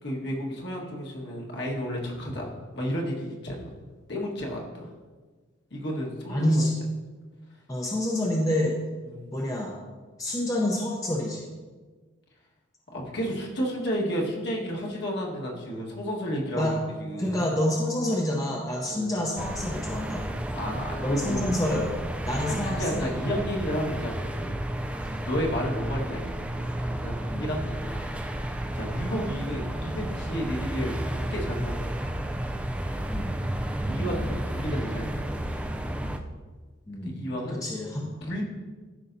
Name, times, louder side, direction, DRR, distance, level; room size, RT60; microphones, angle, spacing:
voice 1, 0.0-3.7 4.1-4.9 5.7-6.6 9.0-9.3 12.9-17.4 18.9-19.1 20.5-21.4 22.5-24.5 25.2-28.0 28.4-32.1 33.9-35.2 37.0-37.6 38.2-38.4, equal, 55° left, -2 dB, 1.6 m, -32 dB
voice 2, 6.3-6.7 7.7-8.8 9.3-9.7 10.2-11.5 16.5-16.8 17.2-20.4 21.0-21.9 22.3-23.1 27.3-27.5 33.1-33.3 36.9-38.2, left 1 dB, 15° left, -1 dB, 0.7 m, -28 dB
sound 1, 19.4-36.2, right 1 dB, 5° right, 0.3 m, -32 dB
13.5 x 5.6 x 2.7 m, 1.4 s
head